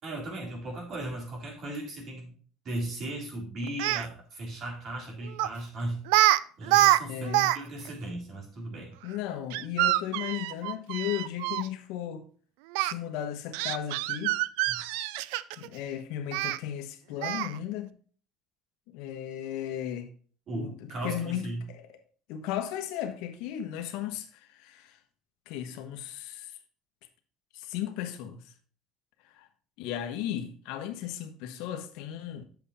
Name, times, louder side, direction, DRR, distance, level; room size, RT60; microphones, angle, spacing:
voice 1, 0.0-2.3 2.7-6.0 6.6-8.9 14.8-14.9 20.5-21.6, right 1 dB, 40° right, 3.7 m, -37 dB
Speech, 3.7-4.1 5.4-5.6 6.1-6.4 6.6-7.6 7.9-8.0 9.5-11.7 12.7-12.9 13.5-15.7 16.3-16.6 17.2-17.6, right 15 dB, 90° right, 0.4 m, -25 dB
voice 2, 7.1-7.5 9.0-12.2 12.8-14.4 15.6-17.9 18.9-20.1 20.5-22.0 22.3-25.0 25.5-26.6 27.5-28.4 29.2-29.5 29.8-32.5, left 10 dB, 75° left, 1.2 m, -35 dB
8.3 x 6.9 x 4.2 m
cardioid pair, 140°, 0 cm